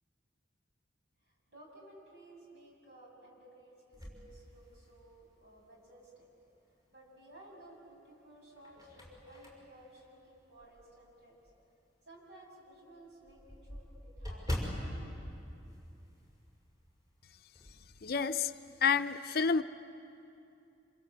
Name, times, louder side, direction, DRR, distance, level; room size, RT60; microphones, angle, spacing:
voice 1, 1.2-6.3 6.8-11.4 12.0-14.6 15.0-15.3, right 1 dB, 65° right, -1 dB, 7.3 m, -56 dB
sound 1, 3.9-5.3 5.8-5.9 7.4-7.9 8.4-11.0 11.4-11.6 11.9-12.0 12.3-12.4 12.7-16.5 16.7-16.9 17.3-17.9, equal, 20° right, 6.0 m, -42 dB
voice 2, 18.0-18.5 18.8-19.6, left 6 dB, 55° left, 10 dB, 0.6 m, -29 dB
27.0 x 27.0 x 8.1 m, 2.7 s
head